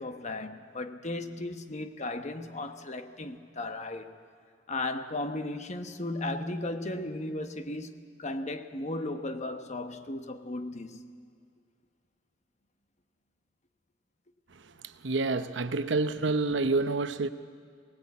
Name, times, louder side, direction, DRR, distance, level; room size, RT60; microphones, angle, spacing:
voice 1, 0.0-4.1 4.7-11.0, left 2 dB, 40° left, 1.1 m, -36 dB
voice 2, 14.5-17.3, right 3 dB, 75° right, 0.9 m, -28 dB
23.0 x 19.0 x 8.4 m
head